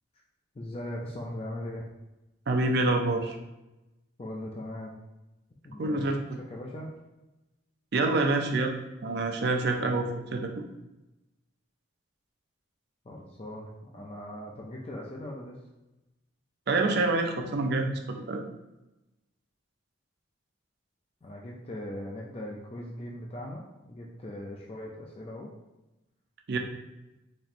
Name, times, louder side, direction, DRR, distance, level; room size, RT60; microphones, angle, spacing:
voice 1, 0.5-1.9 4.2-4.9 5.6-6.2 6.5-6.9 13.0-15.6 21.2-25.5, left 1 dB, 30° left, -2 dB, 0.4 m, -39 dB
voice 2, 2.5-3.3 5.8-6.1 7.9-8.8 9.0-10.7 16.7-18.4 26.5-26.6, right 2 dB, 55° right, 3 dB, 0.4 m, -27 dB
4.2 x 3.0 x 2.5 m, 1.0 s
head